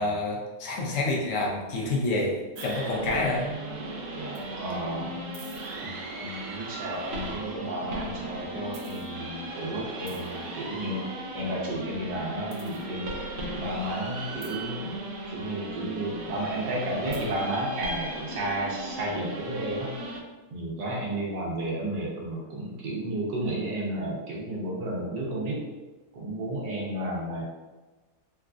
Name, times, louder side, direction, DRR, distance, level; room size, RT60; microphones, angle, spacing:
voice 1, 0.0-3.5, left 2 dB, 65° left, -2 dB, 0.8 m, -28 dB
sound 1, 2.6-20.2, right 1 dB, 65° right, 0.8 m, -37 dB
voice 2, 4.1-5.2 5.8-14.9 15.3-19.9 20.5-25.6 26.1-27.4, right 1 dB, 90° right, -3 dB, 1.5 m, -32 dB
3.9 x 2.3 x 2.4 m, 1.2 s
omnidirectional pair, 1.8 m